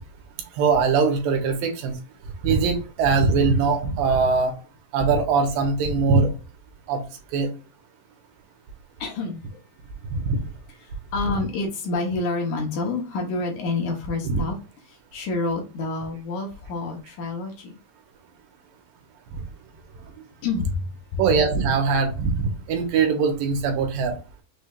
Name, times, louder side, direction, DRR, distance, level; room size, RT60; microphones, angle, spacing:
voice 1, 0.6-2.0 2.4-4.5 4.9-6.3 6.9-7.0 7.3-7.5 10.1-10.4 14.2-14.4 21.2-24.2, right 4 dB, 80° right, 4 dB, 2.8 m, -21 dB
voice 2, 9.0-9.6 10.8-14.6 14.9-17.8 20.4-21.2, left 3 dB, 70° left, 2 dB, 2.3 m, -28 dB
6.3 x 3.3 x 2.5 m, 0.32 s
omnidirectional pair, 4.0 m